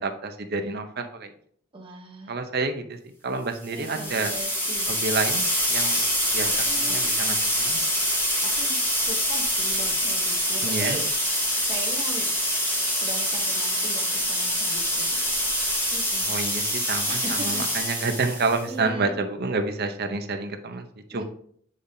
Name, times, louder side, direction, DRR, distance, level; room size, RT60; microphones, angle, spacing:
voice 1, 0.0-1.3 2.3-3.0 3.2-4.3 4.9-6.0 6.3-6.5 6.7-7.8 10.6-11.0 16.2-21.2, right 3 dB, 50° right, 6 dB, 0.8 m, -29 dB
voice 2, 1.7-2.3 3.7-4.9 6.4-7.2 8.4-11.1 11.6-12.4 13.0-15.3 15.9-16.3 17.1-18.1 18.7-19.1 21.1-21.2, right 2 dB, 25° right, 0 dB, 1.0 m, -39 dB
sound 1, 3.7-18.6, equal, 10° left, 1.4 m, -25 dB
8.6 x 5.1 x 2.8 m, 0.62 s
head